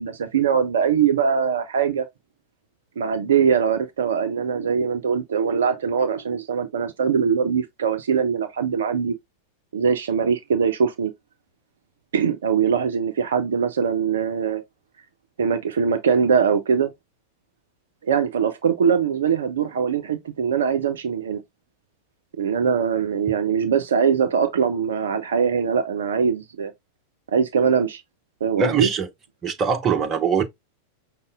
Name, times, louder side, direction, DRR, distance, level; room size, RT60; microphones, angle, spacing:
voice 1, 0.0-2.0 3.0-9.2 9.7-11.1 12.1-14.6 15.4-16.9 18.0-21.4 22.4-26.7 27.3-28.0 28.4-28.9, right 6 dB, 65° right, 0.5 m, -22 dB
voice 2, 28.6-29.1 29.4-30.4, right 6 dB, 25° right, 0.8 m, -22 dB
5.3 x 2.1 x 3.5 m
figure-of-eight pair, 90°, 0 cm